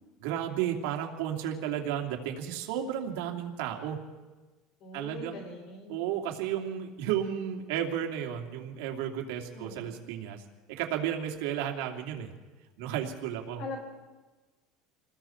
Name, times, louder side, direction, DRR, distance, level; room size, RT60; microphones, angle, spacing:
voice 1, 0.2-4.0 4.9-5.4 5.9-10.4 10.7-12.3 12.8-13.6, right 10 dB, 80° right, 3 dB, 2.5 m, -33 dB
voice 2, 4.8-6.2 9.5-10.0 13.6-13.8, left 3 dB, 50° left, 2 dB, 5.9 m, -42 dB
28.5 x 20.0 x 4.5 m, 1.2 s
cardioid pair, 165°, 0 cm